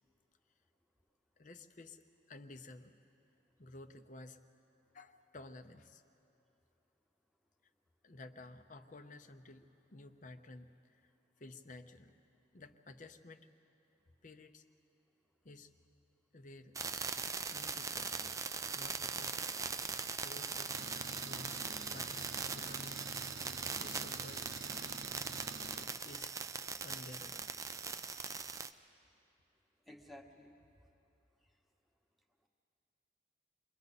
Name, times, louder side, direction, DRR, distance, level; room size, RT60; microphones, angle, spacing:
voice 1, 1.4-2.9 3.6-4.4 4.9-6.0 8.0-11.1 11.4-12.2 12.5-13.5 14.2-14.6 15.4-15.7 16.3-16.8 17.5-18.4 18.7-19.4 20.2-20.8 21.2-21.6 21.9-23.0 23.8-24.5 25.7-26.4 26.8-27.5, left 2 dB, 40° left, 9 dB, 0.7 m, -53 dB
sound 1, 16.7-28.7, right 5 dB, 15° right, 0.4 m, -41 dB
Engine, 20.7-25.8, right 3 dB, 85° right, 1.0 m, -48 dB
voice 2, 29.9-30.5, left 1 dB, ahead, 1 dB, 1.1 m, -56 dB
29.0 x 22.5 x 4.1 m, 2.8 s
head